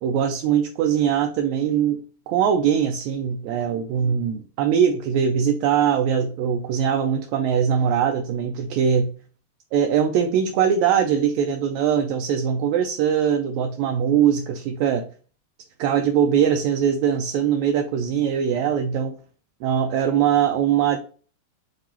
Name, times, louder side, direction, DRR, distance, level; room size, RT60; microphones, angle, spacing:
voice 1, 0.0-2.0 2.3-9.1 9.7-15.1 15.8-19.2 19.6-21.0, right 8 dB, 80° right, 4 dB, 1.8 m, -21 dB
6.0 x 2.8 x 2.8 m, 0.39 s
omnidirectional pair, 3.5 m